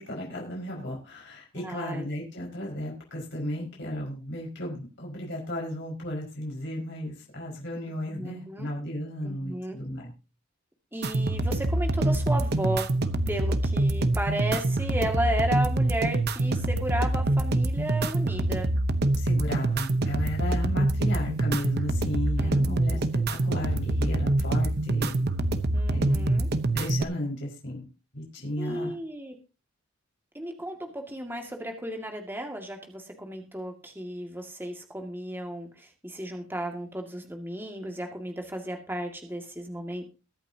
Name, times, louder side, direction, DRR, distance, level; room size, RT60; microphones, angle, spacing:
voice 1, 0.0-10.1 19.2-23.0 23.3-25.2 25.9-26.4 26.7-27.8 28.1-28.9, left 1 dB, 60° left, -2 dB, 5.1 m, -34 dB
voice 2, 1.5-2.1 8.1-8.7 9.2-9.8 10.9-12.9 13.3-18.7 22.4-23.0 25.7-26.5 28.6-29.4 30.3-40.0, right 1 dB, 10° right, 3 dB, 2.0 m, -34 dB
sound 1, 11.0-27.0, right 2 dB, 50° right, 0.9 m, -25 dB
22.0 x 8.8 x 2.8 m, 0.31 s
head